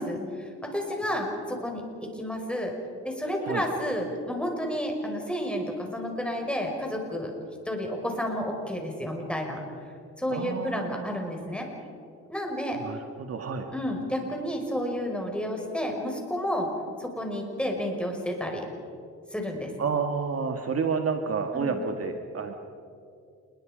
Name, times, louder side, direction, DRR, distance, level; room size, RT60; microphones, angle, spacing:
voice 1, 0.0-2.7 3.0-7.3 7.7-9.6 10.2-11.7 12.3-12.8 13.7-16.7 17.0-18.7 19.3-19.7 21.5-21.8, equal, 5° left, 1 dB, 5.4 m, -31 dB
voice 2, 10.3-11.5 12.8-13.7 19.8-22.5, right 5 dB, 50° right, 5 dB, 1.8 m, -30 dB
29.0 x 21.5 x 5.2 m, 2.4 s
cardioid pair, 90°, 30 cm